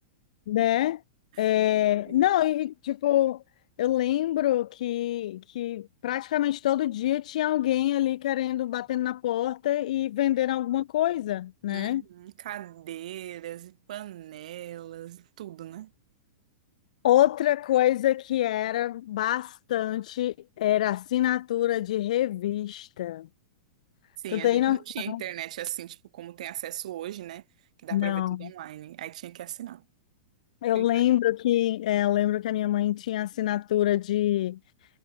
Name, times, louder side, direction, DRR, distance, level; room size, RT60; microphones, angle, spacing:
voice 1, 0.5-1.0 1.4-3.4 3.8-12.0 17.0-23.3 24.3-24.8 25.1-25.2 27.9-28.5 30.6-34.6, left 13 dB, 65° left, 1.2 m, -25 dB
voice 2, 11.7-15.9 24.2-27.4 27.8-29.9 30.7-31.0, right 13 dB, 65° right, 4.1 m, -39 dB
hypercardioid pair, 135°, 4 cm